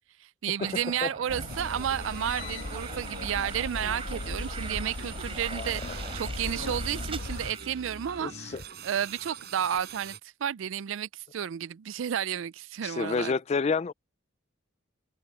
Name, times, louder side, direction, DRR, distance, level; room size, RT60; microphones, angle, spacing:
voice 1, 0.2-8.5 8.8-10.1 10.4-13.4, right 9 dB, 70° right, 0.4 m, -32 dB
sound 1, 0.6-8.4, right 4 dB, 30° right, 3.9 m, -43 dB
sound 2, 1.3-7.5, left 2 dB, 70° left, 1.1 m, -37 dB
sound 3, 1.5-10.2, right 6 dB, 55° right, 4.1 m, -45 dB
voice 2, 5.5-5.9 8.2-8.6 12.8-13.9, left 4 dB, 30° left, 0.3 m, -29 dB
open air
head